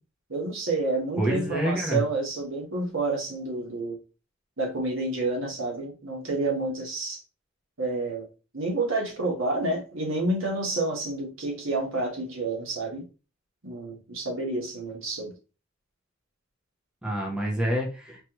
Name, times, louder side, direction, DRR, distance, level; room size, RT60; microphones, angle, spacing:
voice 1, 0.3-4.0 4.6-7.2 7.8-8.3 8.5-13.0 13.6-15.3, right 2 dB, 75° right, 0 dB, 1.6 m, -29 dB
voice 2, 1.2-2.0 17.0-18.2, right 1 dB, 5° right, -2 dB, 1.0 m, -27 dB
4.5 x 3.0 x 3.0 m, 0.32 s
head